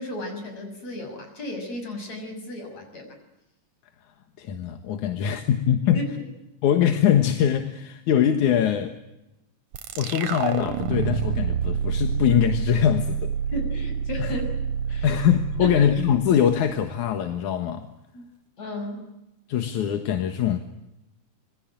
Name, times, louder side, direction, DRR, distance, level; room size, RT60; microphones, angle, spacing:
voice 1, 0.0-3.2 6.0-6.1 13.5-14.5 14.9-15.1 15.6-15.8 18.1-18.2 18.6-19.1, left 1 dB, 60° left, 6 dB, 7.7 m, -34 dB
voice 2, 4.4-6.0 6.6-9.0 10.0-13.3 14.2-14.4 15.0-17.9 19.5-20.6, left 9 dB, 80° left, 7 dB, 2.9 m, -22 dB
sound 1, 9.7-17.0, right 7 dB, 90° right, 2.8 m, -28 dB
26.5 x 22.5 x 9.0 m, 0.92 s
omnidirectional pair, 3.4 m